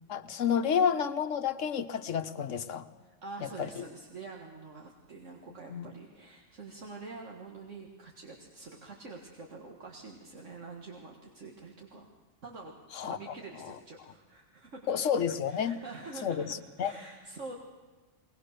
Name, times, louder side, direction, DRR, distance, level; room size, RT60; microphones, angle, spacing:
voice 1, 0.1-2.9 3.4-3.8 5.7-5.9 12.9-13.2 13.6-13.7 14.9-15.8 16.2-16.9, left 7 dB, 85° left, 9 dB, 1.3 m, -30 dB
voice 2, 3.0-12.1 12.4-12.7 13.0-14.9 15.5-16.5 16.8-17.6, right 3 dB, 80° right, 0 dB, 2.2 m, -46 dB
22.0 x 19.5 x 6.7 m, 1.3 s
omnidirectional pair, 1.3 m